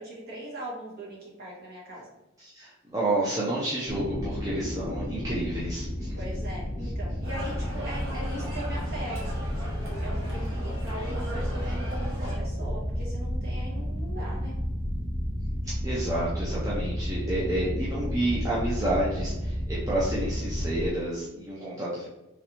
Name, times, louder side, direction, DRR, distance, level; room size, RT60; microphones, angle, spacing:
voice 1, 0.0-2.0 6.1-9.3 10.0-14.6, right 1 dB, 50° right, -5 dB, 1.2 m, -40 dB
voice 2, 2.4-6.2 15.6-22.1, right 1 dB, 15° right, -8 dB, 0.5 m, -30 dB
sound 1, 3.8-20.9, equal, 40° left, 0.6 m, -31 dB
sound 2, 7.2-12.4, equal, 75° right, 1.1 m, -40 dB
3.2 x 2.6 x 2.9 m, 0.99 s
head